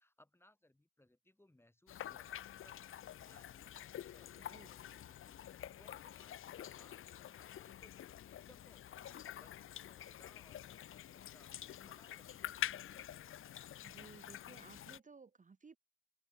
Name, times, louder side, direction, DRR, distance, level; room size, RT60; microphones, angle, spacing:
voice 1, 0.0-8.9 9.4-13.2, left 1 dB, 5° left, 2.5 m, -68 dB
sound 1, 1.9-15.0, left 11 dB, 40° left, 0.6 m, -48 dB
voice 2, 4.4-4.7 13.8-15.8, right 4 dB, 25° right, 1.7 m, -58 dB
open air
cardioid pair, 105°, 34 cm